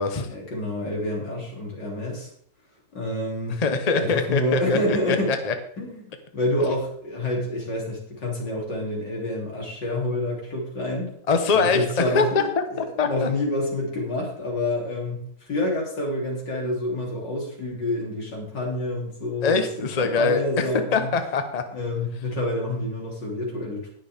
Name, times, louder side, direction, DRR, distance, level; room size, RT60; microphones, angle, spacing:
voice 1, 0.3-2.3 2.9-3.6 3.9-5.3 5.8-11.1 11.5-21.1 21.7-23.9, left 1 dB, 90° left, -2 dB, 3.9 m, -28 dB
voice 2, 3.6-5.5 11.3-11.8 12.1-13.3 19.4-20.7 20.9-21.6, left 4 dB, 30° left, 7 dB, 0.9 m, -23 dB
19.0 x 6.6 x 3.5 m, 0.63 s
omnidirectional pair, 1.8 m